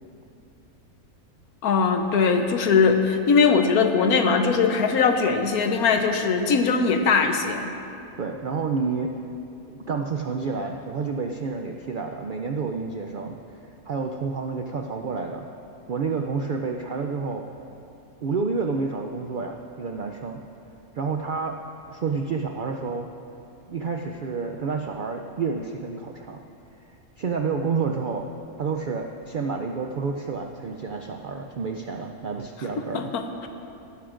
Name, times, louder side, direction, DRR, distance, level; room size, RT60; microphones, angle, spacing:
voice 1, 1.6-7.7 32.9-33.5, left 5 dB, 85° left, 5 dB, 1.3 m, -21 dB
voice 2, 8.2-9.1 9.7-15.5 15.9-17.4 18.2-20.4 20.9-21.6 21.9-23.1 23.7-26.4 27.2-28.2 28.6-33.1, right 4 dB, 85° right, 3 dB, 0.4 m, -29 dB
18.5 x 11.5 x 2.5 m, 2.7 s
omnidirectional pair, 1.5 m